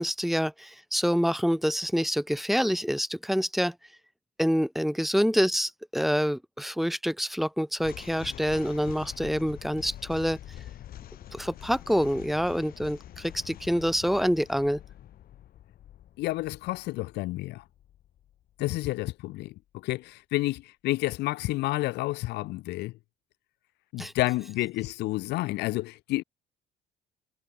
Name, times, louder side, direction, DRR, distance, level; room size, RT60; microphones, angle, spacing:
voice 1, 0.0-3.7 4.4-10.4 11.3-14.8 24.0-24.1, equal, ahead, 1.5 m, -27 dB
sound 1, 7.8-19.1, left 12 dB, 60° left, 2.9 m, -45 dB
voice 2, 16.2-17.6 18.6-22.9 23.9-26.2, left 19 dB, 80° left, 0.8 m, -30 dB
cardioid pair, 110°, 17 cm